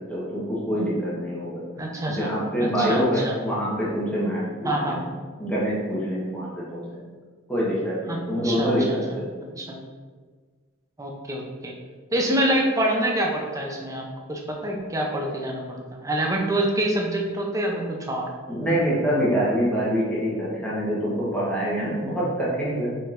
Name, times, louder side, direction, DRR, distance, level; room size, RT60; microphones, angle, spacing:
voice 1, 0.1-1.5 2.1-5.1 5.4-6.8 7.5-9.3 18.5-22.9, equal, 5° left, -8 dB, 1.1 m, -25 dB
voice 2, 1.8-2.3 2.6-3.4 4.6-5.0 8.1-9.0 9.4-9.8 11.0-11.7 12.1-18.3, right 1 dB, 15° right, 0 dB, 0.5 m, -26 dB
4.3 x 3.8 x 2.5 m, 1.5 s
head